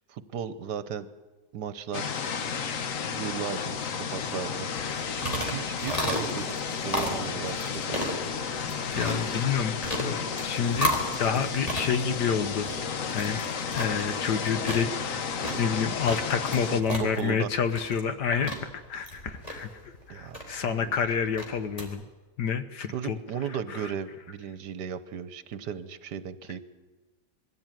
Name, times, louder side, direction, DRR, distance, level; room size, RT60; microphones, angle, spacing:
voice 1, 0.1-1.1 1.5-2.1 3.2-3.8 4.1-4.7 5.1-8.0 16.9-17.5 20.1-20.9 22.9-26.6, right 8 dB, 70° right, 14 dB, 1.6 m, -36 dB
sound 1, 1.9-16.8, left 6 dB, 55° left, 1.3 m, -32 dB
sound 2, 4.8-21.9, equal, 20° left, 3.6 m, -35 dB
voice 2, 8.6-12.7 13.1-13.4 13.7-15.2 15.6-22.0 22.4-23.2 23.5-23.9, left 7 dB, 70° left, 11 dB, 1.5 m, -29 dB
22.0 x 15.5 x 9.1 m, 1.3 s
omnidirectional pair, 1.9 m